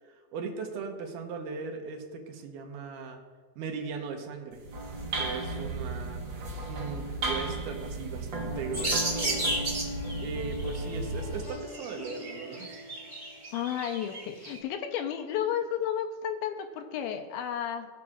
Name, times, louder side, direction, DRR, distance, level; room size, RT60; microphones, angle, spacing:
voice 1, 0.3-3.2 3.6-4.6 5.2-6.2 6.7-9.5 10.2-12.8, right 5 dB, 70° right, 3 dB, 2.4 m, -38 dB
sound 1, 4.5-11.5, right 2 dB, 90° right, 1.0 m, -35 dB
Piano, 8.5-13.8, left 3 dB, 70° left, 2.3 m, -45 dB
sound 2, 8.7-10.2 10.6-10.9 11.5-14.6, right 2 dB, 25° right, 2.3 m, -33 dB
voice 2, 13.5-17.9, left 9 dB, 85° left, 5 dB, 2.6 m, -32 dB
19.0 x 7.1 x 2.4 m, 1.5 s
omnidirectional pair, 4.2 m